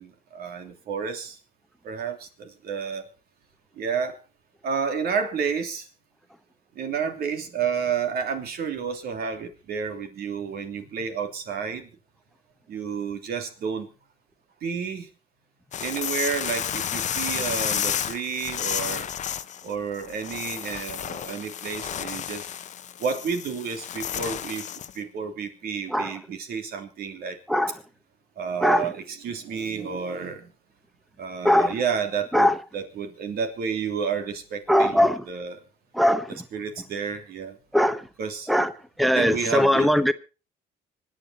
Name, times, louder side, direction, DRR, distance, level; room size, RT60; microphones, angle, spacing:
voice 1, 0.0-1.4 1.8-3.1 3.8-4.2 4.6-5.9 6.7-11.9 12.7-13.9 14.6-15.1 15.8-19.1 19.6-22.5 23.0-24.7 24.9-27.4 28.4-30.5 31.2-35.6 36.3-37.6 38.2-38.5 39.0-40.1, right 6 dB, 65° right, 3.0 m, -30 dB
sound 1, 15.7-25.0, left 9 dB, 45° left, 0.8 m, -31 dB
voice 2, 34.7-35.2 35.9-36.4 37.7-38.0 38.5-38.7 39.0-40.1, left 1 dB, ahead, 1.0 m, -20 dB
25.5 x 9.2 x 4.2 m
cardioid pair, 110°, 17 cm